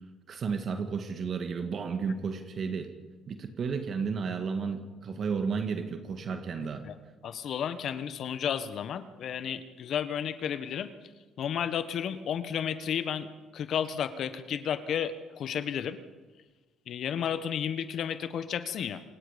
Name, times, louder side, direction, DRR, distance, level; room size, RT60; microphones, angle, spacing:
voice 1, 0.3-2.9 3.3-6.9, right 5 dB, 50° right, 6 dB, 2.0 m, -32 dB
voice 2, 7.2-10.9 11.4-13.3 13.5-16.0 16.9-19.0, left 8 dB, 60° left, 12 dB, 1.3 m, -32 dB
27.5 x 19.5 x 5.3 m, 1.3 s
supercardioid pair, 85°, 0 cm